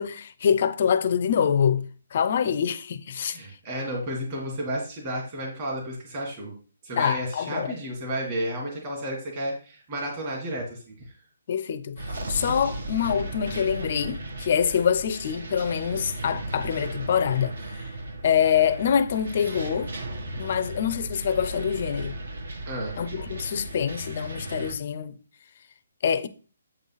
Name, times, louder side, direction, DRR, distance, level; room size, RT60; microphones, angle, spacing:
voice 1, 0.0-1.8 2.1-3.4 7.0-7.7 11.5-12.0 12.3-17.5 18.2-19.9 20.4-22.2 23.0-25.1 26.0-26.3, left 8 dB, 35° left, 0.6 m, -25 dB
voice 2, 3.2-6.5 6.8-10.9 22.7-23.0, equal, 20° right, 1.9 m, -32 dB
sound 1, 12.0-24.7, right 1 dB, 55° right, 1.6 m, -36 dB
7.9 x 4.0 x 5.6 m
hypercardioid pair, 175°, 0 cm